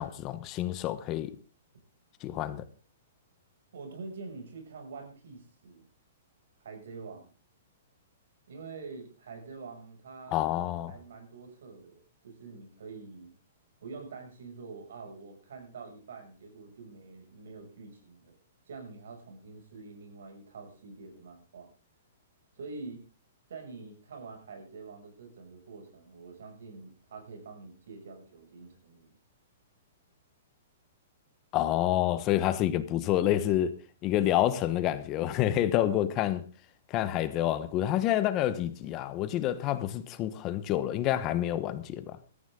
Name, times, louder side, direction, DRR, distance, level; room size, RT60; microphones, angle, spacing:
voice 1, 0.0-1.3 2.2-2.6 10.3-10.9 31.5-33.7 34.0-36.4 36.9-42.2, left 12 dB, 25° left, 1.0 m, -28 dB
voice 2, 3.7-5.9 6.6-7.3 8.5-10.5 10.9-13.3 13.8-18.4 18.7-21.7 22.6-23.0 23.5-29.1, right 4 dB, 75° right, 6.7 m, -46 dB
17.5 x 13.5 x 3.8 m
hypercardioid pair, 160°, 0 cm